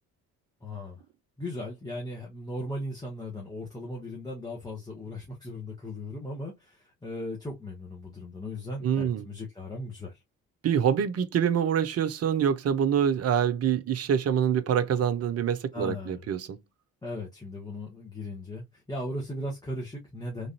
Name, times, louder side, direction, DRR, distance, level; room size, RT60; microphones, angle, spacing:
voice 1, 0.6-1.0 1.4-10.2 15.7-16.2 17.0-20.5, left 1 dB, 10° left, 1.1 m, -37 dB
voice 2, 8.8-9.2 10.6-16.6, right 8 dB, 35° right, 0.6 m, -25 dB
3.2 x 2.6 x 2.7 m
figure-of-eight pair, 40°, 47 cm